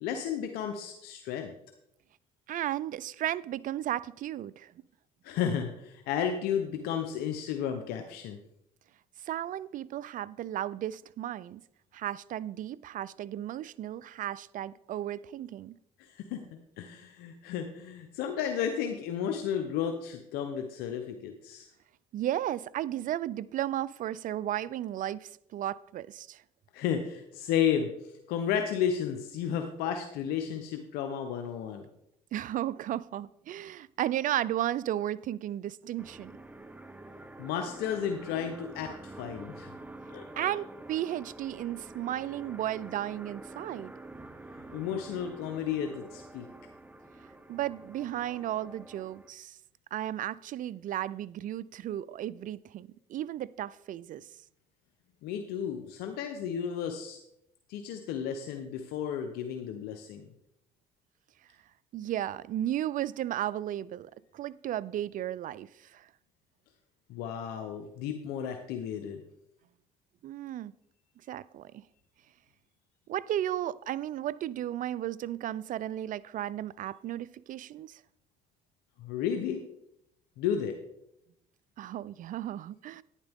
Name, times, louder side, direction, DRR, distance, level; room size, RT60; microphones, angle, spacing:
voice 1, 0.0-1.5 5.2-8.4 16.0-16.4 16.8-21.7 26.7-27.9 28.3-31.8 37.4-39.7 40.1-40.5 44.7-46.5 55.2-57.2 57.7-60.3 67.1-69.2 79.0-79.6 80.4-80.8, left 8 dB, 80° left, 0.9 m, -33 dB
voice 2, 2.5-4.7 9.2-11.6 11.9-15.8 22.1-26.4 32.3-36.3 40.4-43.9 47.5-49.6 49.9-54.3 61.9-66.1 70.2-70.7 71.3-71.8 73.1-78.0 81.8-83.0, right 12 dB, 55° right, 0.4 m, -34 dB
sound 1, 36.0-49.3, right 2 dB, 10° right, 0.9 m, -48 dB
11.5 x 9.7 x 3.6 m
supercardioid pair, 70°, 16 cm